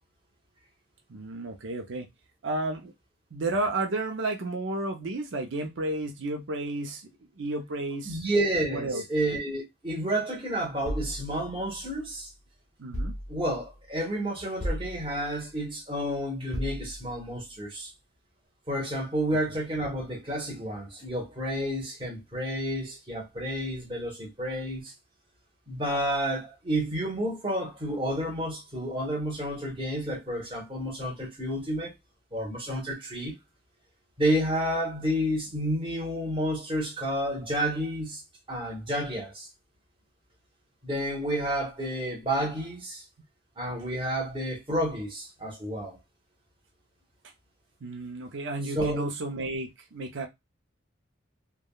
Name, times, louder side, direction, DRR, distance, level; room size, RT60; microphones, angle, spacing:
voice 1, 1.1-2.1 2.4-2.9 3.3-7.0 7.4-8.2 8.7-9.0 12.8-13.2 47.8-50.3, right 2 dB, 80° right, 0.6 m, -32 dB
voice 2, 8.0-12.3 13.3-17.9 18.7-24.9 25.7-31.9 32.3-33.3 34.2-38.2 38.5-39.5 40.8-43.0 43.6-46.0 48.7-49.1, right 1 dB, 25° right, 1.0 m, -30 dB
sound 1, 10.8-12.2 12.9-13.8 14.6-15.5 16.5-17.3, equal, 35° left, 0.5 m, -36 dB
3.4 x 2.2 x 2.3 m
head